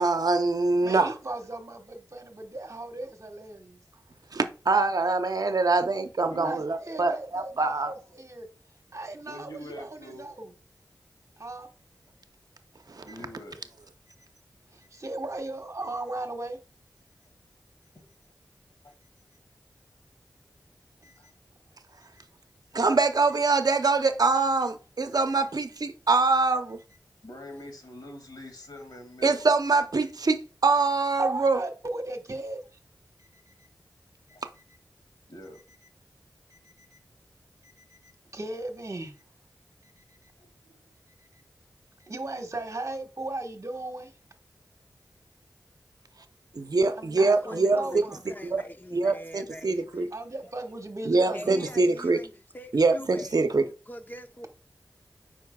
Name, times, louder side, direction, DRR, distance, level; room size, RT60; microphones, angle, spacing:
voice 1, 0.0-1.1 4.3-7.9 13.0-13.1 22.7-26.8 29.2-31.6 46.5-48.0 48.4-48.6 48.9-50.1 51.0-52.2 52.7-53.6, right 3 dB, 65° right, 0.7 m, -24 dB
voice 2, 0.7-3.8 6.4-8.5 8.9-10.5 11.4-11.7 14.7-16.6 21.0-21.1 31.2-32.6 33.5-33.6 36.5-37.0 37.6-39.1 42.1-44.1 46.9-48.2 50.1-51.7, right 2 dB, 50° right, 1.4 m, -37 dB
voice 3, 6.2-6.6 9.2-10.3 13.0-13.6 18.8-18.9 21.2-21.3 27.2-29.4 34.3-34.4 35.3-35.6 40.4-40.8, equal, 75° left, 2.2 m, -44 dB
voice 4, 47.2-50.1 51.3-53.4 53.9-54.5, left 1 dB, 25° left, 0.8 m, -43 dB
8.2 x 5.4 x 2.3 m
cardioid pair, 45°, 7 cm